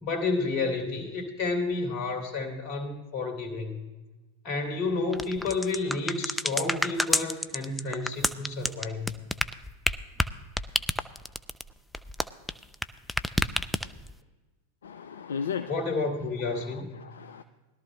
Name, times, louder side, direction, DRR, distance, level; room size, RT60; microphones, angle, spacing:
voice 1, 0.0-3.8 4.4-9.1 15.7-17.0, left 3 dB, 45° left, 4 dB, 2.8 m, -30 dB
sound 1, 5.1-12.8 13.1-14.1, left 1 dB, 5° left, 0.5 m, -28 dB
voice 2, 14.8-16.1 16.5-17.4, left 7 dB, 75° left, 8 dB, 0.5 m, -36 dB
20.5 x 12.5 x 2.2 m, 1.2 s
figure-of-eight pair, 90°, 0 cm